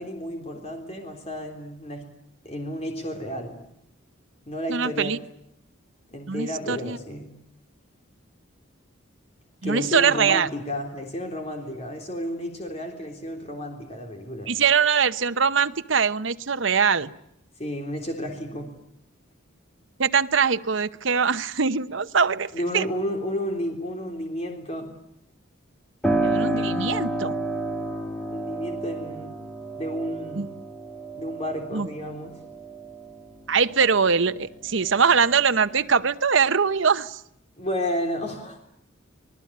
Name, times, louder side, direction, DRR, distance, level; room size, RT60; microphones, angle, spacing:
voice 1, 0.0-2.1 2.4-3.6 4.5-5.2 6.1-7.3 9.6-14.5 17.6-18.7 22.5-24.9 28.3-29.4 29.8-30.5 31.1-32.4 37.6-38.6, equal, 30° left, 3 dB, 3.5 m, -32 dB
voice 2, 4.7-5.2 6.3-7.0 9.6-10.5 14.5-17.1 20.0-22.8 26.2-27.4 30.4-30.5 31.7-31.9 33.5-37.2, right 6 dB, 70° right, 11 dB, 0.9 m, -22 dB
Piano, 26.0-34.5 34.9-35.9, right 1 dB, 5° left, 2.2 m, -30 dB
26.5 x 20.5 x 8.6 m, 0.75 s
head